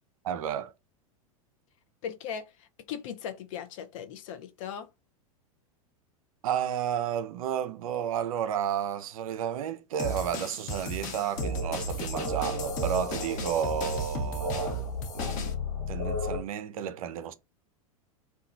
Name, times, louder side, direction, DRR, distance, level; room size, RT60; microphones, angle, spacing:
voice 1, 0.2-0.7 6.4-14.9 15.1-15.6 15.9-17.3, right 9 dB, 70° right, 0.4 m, -32 dB
voice 2, 2.0-4.9, left 8 dB, 60° left, 0.4 m, -38 dB
sound 1, 10.0-15.5, left 1 dB, 45° left, 0.9 m, -36 dB
sound 2, 11.4-16.4, left 1 dB, 85° left, 0.9 m, -34 dB
2.8 x 2.2 x 2.4 m
hypercardioid pair, 95°, 19 cm